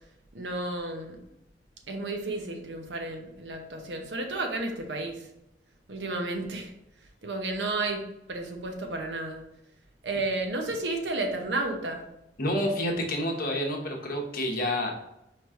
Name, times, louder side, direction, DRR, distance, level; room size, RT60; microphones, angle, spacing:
voice 1, 0.3-1.2 1.9-5.2 5.9-6.7 7.2-9.4 10.0-12.1, right 2 dB, 80° right, 3 dB, 0.8 m, -32 dB
voice 2, 12.4-14.9, left 1 dB, 55° left, 0 dB, 1.0 m, -28 dB
4.8 x 3.1 x 3.6 m, 0.85 s
head